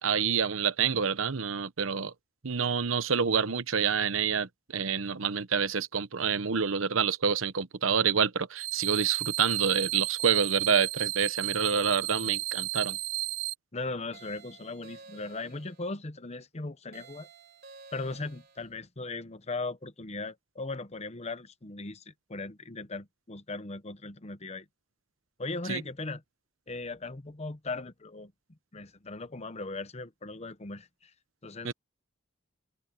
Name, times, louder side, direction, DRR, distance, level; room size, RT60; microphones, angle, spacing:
voice 1, 0.0-2.1 2.4-13.0 25.7-25.8 31.6-31.7, right 6 dB, 90° right, 0.9 m, -27 dB
sound 1, 8.6-13.5, right 22 dB, 70° right, 0.3 m, -33 dB
voice 2, 13.7-17.3 17.9-24.7 25.4-26.2 26.7-28.3 28.7-31.1 31.4-31.7, left 3 dB, 35° left, 1.0 m, -38 dB
sound 2, 14.1-15.9 16.9-18.7, right 4 dB, 55° right, 4.2 m, -52 dB
open air
head